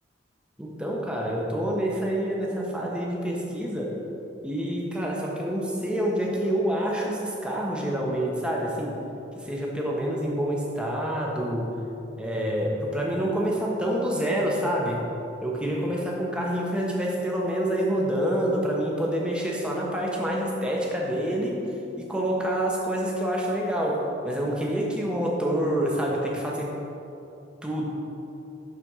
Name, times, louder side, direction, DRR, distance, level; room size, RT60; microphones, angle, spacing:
voice 1, 0.6-4.0 4.4-9.0 9.3-11.7 12.2-15.0 15.4-21.6 22.0-26.8 27.6-27.9, right 1 dB, 5° right, -3 dB, 1.1 m, -27 dB
11.5 x 4.3 x 4.9 m, 2.9 s
head